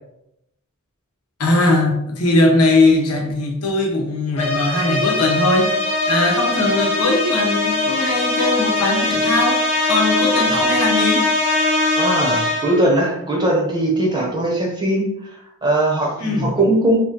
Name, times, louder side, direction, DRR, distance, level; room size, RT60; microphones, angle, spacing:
voice 1, 1.4-5.7 6.1-9.6 9.9-11.3 16.2-16.5, left 2 dB, 85° left, 1 dB, 0.9 m, -19 dB
sound 1, 4.4-12.9, left 2 dB, 30° left, 0.7 m, -20 dB
voice 2, 11.9-15.1 15.6-17.0, right 1 dB, 20° right, -1 dB, 0.8 m, -19 dB
2.9 x 2.6 x 3.8 m, 0.81 s
head